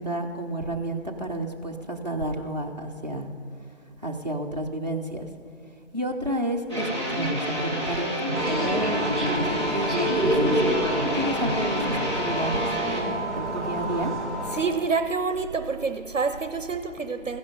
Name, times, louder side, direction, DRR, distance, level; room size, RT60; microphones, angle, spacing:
voice 1, 0.0-3.3 4.0-5.3 5.9-9.9 10.2-10.5 11.1-11.8 12.1-14.1, right 1 dB, 35° right, 0.9 m, -31 dB
sound 1, 6.7-13.0, equal, 20° left, 1.5 m, -28 dB
sound 2, 8.3-14.6, equal, ahead, 0.7 m, -28 dB
voice 2, 14.5-17.4, right 4 dB, 80° right, 0.7 m, -27 dB
15.5 x 10.5 x 5.2 m
figure-of-eight pair, 175°, 38 cm